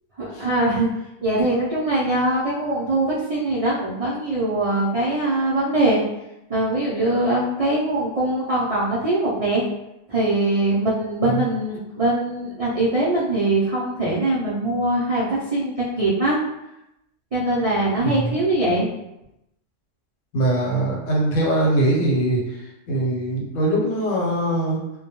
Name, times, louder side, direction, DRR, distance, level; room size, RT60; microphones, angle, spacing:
voice 1, 0.2-0.9 1.2-6.0 6.5-9.6 10.1-16.4 17.3-18.9, right 1 dB, 65° right, -7 dB, 0.3 m, -22 dB
voice 2, 18.0-18.4 20.3-22.6 22.9-24.8, right 1 dB, 80° left, -3 dB, 1.1 m, -22 dB
2.2 x 2.1 x 2.9 m, 0.89 s
omnidirectional pair, 1.3 m